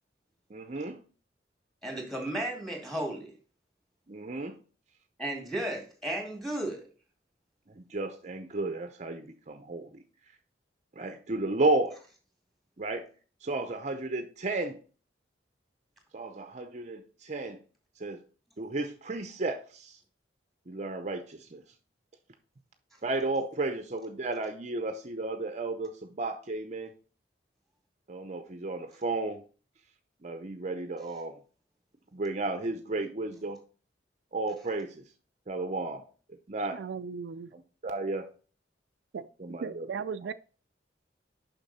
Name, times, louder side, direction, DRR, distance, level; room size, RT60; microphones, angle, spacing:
voice 1, 0.5-1.0 4.1-4.6 7.7-10.0 11.0-12.0 12.8-13.1 13.4-14.8 16.1-17.6 18.0-18.2 18.6-20.0 20.7-21.6 23.0-26.9 28.1-29.4 30.2-31.4 32.1-33.6 34.3-35.1 35.5-36.1 36.5-36.8 37.5-38.2 39.4-39.9, right 2 dB, 40° right, 0.7 m, -33 dB
voice 2, 1.8-3.3 5.2-6.8, right 1 dB, ahead, 2.4 m, -34 dB
voice 3, 36.7-37.5 39.1-39.2 39.6-40.3, right 6 dB, 75° right, 0.4 m, -36 dB
6.9 x 5.8 x 4.2 m
head